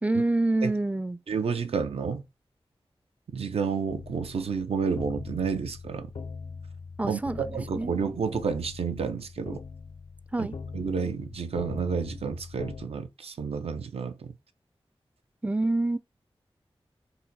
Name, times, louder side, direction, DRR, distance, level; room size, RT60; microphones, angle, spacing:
voice 1, 0.0-1.2 7.0-7.9 10.3-10.5 15.4-16.0, right 2 dB, 15° right, 0.4 m, -27 dB
voice 2, 1.3-2.2 3.3-6.1 7.0-9.6 10.4-14.3, right 5 dB, 80° right, 0.5 m, -30 dB
sound 1, 3.9-12.9, left 5 dB, 70° left, 0.4 m, -41 dB
3.9 x 2.2 x 4.0 m
cardioid pair, 40°, 10 cm